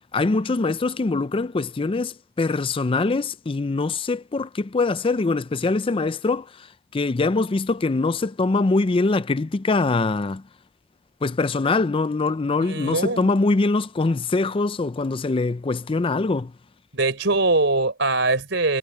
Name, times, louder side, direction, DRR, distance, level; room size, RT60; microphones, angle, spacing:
voice 1, 0.1-6.7 6.9-10.4 11.2-16.5, left 3 dB, 30° left, 0.4 m, -23 dB
voice 2, 12.6-13.3 16.9-18.8, right 2 dB, 65° right, 5.2 m, -22 dB
head